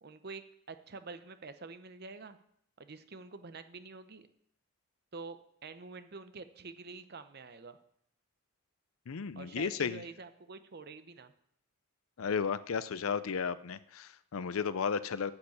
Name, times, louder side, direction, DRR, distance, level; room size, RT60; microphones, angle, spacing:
voice 1, 0.0-2.4 2.8-4.3 5.1-7.8 9.3-11.3, right 4 dB, 50° right, 10 dB, 0.8 m, -47 dB
voice 2, 9.1-10.0 12.2-15.3, left 6 dB, 75° left, 16 dB, 0.5 m, -34 dB
9.9 x 6.7 x 8.4 m, 0.72 s
head